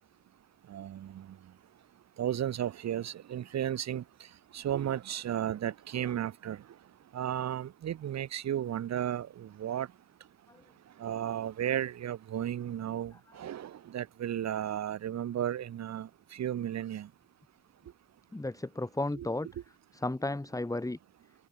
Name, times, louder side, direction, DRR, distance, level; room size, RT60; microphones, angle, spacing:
voice 1, 0.7-1.4 2.2-4.0 4.5-6.6 7.1-9.9 11.0-17.1 19.2-19.3, right 10 dB, 60° right, 1.8 m, -34 dB
voice 2, 18.3-19.5 19.9-21.0, left 2 dB, 10° left, 3.3 m, -33 dB
cardioid pair, 90°, 30 cm